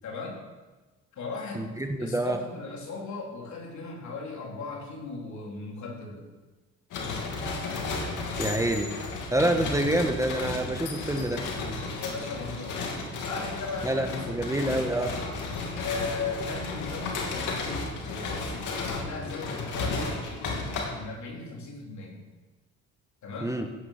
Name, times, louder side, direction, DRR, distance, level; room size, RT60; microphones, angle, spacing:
voice 1, 0.0-0.4 1.1-1.7 2.0-6.3 12.0-12.8 13.2-14.5 15.7-22.2 23.2-23.5, left 3 dB, 70° left, -1 dB, 3.8 m, -37 dB
voice 2, 1.5-2.4 8.4-8.9 9.3-11.4 13.8-15.2 23.4-23.6, right 1 dB, 10° right, 5 dB, 1.3 m, -27 dB
sound 1, 6.9-20.8, left 3 dB, 85° left, 2.7 m, -33 dB
15.5 x 9.2 x 5.9 m, 1.2 s
cardioid pair, 90°, 30 cm